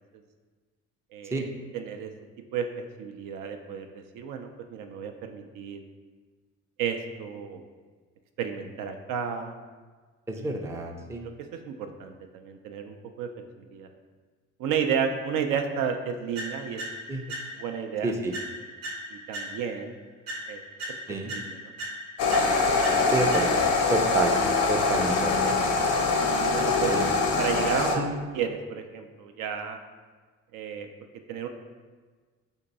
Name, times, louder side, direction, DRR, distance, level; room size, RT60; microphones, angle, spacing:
voice 1, 1.1-1.4 1.7-2.1 2.5-2.6 3.0-5.8 6.8-7.6 8.4-9.6 10.4-10.5 11.7-13.3 13.7-13.9 14.6-16.8 17.6-18.2 19.1-19.9 20.5-20.6 21.3-21.7 26.2-26.9 27.4-28.0 28.3-29.8 30.5-30.9 31.3-31.5, right 7 dB, 65° right, 6 dB, 0.5 m, -32 dB
voice 2, 10.3-11.2 17.1-17.2 18.0-18.3 21.1-21.3 23.1-23.5 23.9-24.4 24.7-25.6 26.8-27.1 27.9-28.1, right 2 dB, 10° right, 2 dB, 0.4 m, -29 dB
sound 1, 16.3-17.8 18.3-19.9 20.3-23.9, equal, 90° right, 0.9 m, -38 dB
sound 2, 22.2-28.0, left 3 dB, 80° left, 0.6 m, -24 dB
2.9 x 2.6 x 4.0 m, 1.4 s
hypercardioid pair, 60°, 35 cm